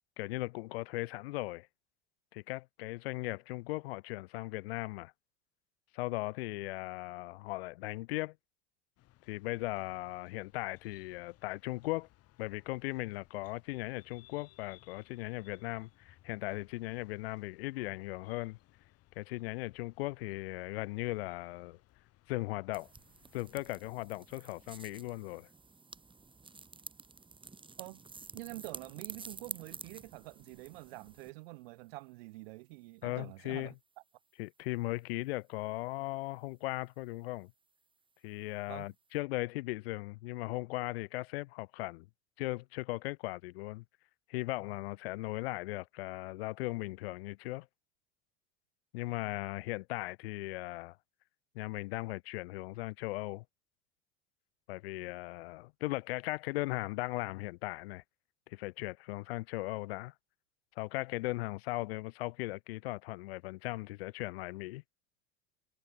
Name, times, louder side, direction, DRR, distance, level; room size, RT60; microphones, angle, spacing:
voice 1, 0.2-1.7 2.3-5.1 5.9-8.4 9.3-12.1 12.4-18.6 19.2-21.8 22.3-22.9 23.3-25.5 33.0-33.7 34.4-37.5 38.2-42.1 42.4-43.8 44.3-47.7 48.9-51.0 51.5-53.4 54.7-58.0 58.5-60.1 60.8-64.8, left 21 dB, 75° left, 0.7 m, -38 dB
sound 1, 9.0-23.6, left 16 dB, 50° left, 4.9 m, -64 dB
sound 2, 22.7-31.3, right 4 dB, 15° right, 4.8 m, -50 dB
voice 2, 28.3-33.7 38.7-38.9, right 23 dB, 75° right, 4.7 m, -47 dB
hypercardioid pair, 95°, 30 cm